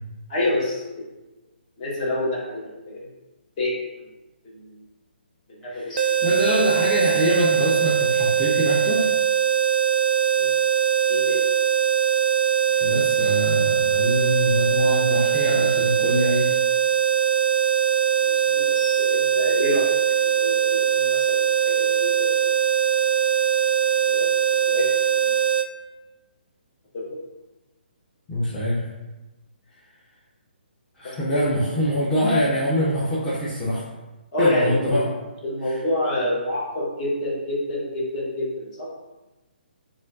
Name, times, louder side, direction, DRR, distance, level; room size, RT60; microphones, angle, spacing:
voice 1, 0.3-1.0 1.8-3.1 3.6-4.0 4.5-4.8 5.5-6.0 10.3-10.5 11.1-11.4 18.2-22.3 24.1-24.3 24.7-24.9 25.2-25.4 26.9-27.2 31.0-31.6 34.3-35.1 35.4-38.9, left 1 dB, 40° left, -4 dB, 1.5 m, -28 dB
voice 2, 5.7-9.1 12.7-16.6 28.3-28.8 31.0-33.8 34.4-35.1 35.6-35.7, equal, 10° left, -8 dB, 0.7 m, -24 dB
sound 1, 6.0-25.7, right 9 dB, 60° right, 0.4 m, -21 dB
7.3 x 2.5 x 2.6 m, 1.1 s
figure-of-eight pair, 135°, 6 cm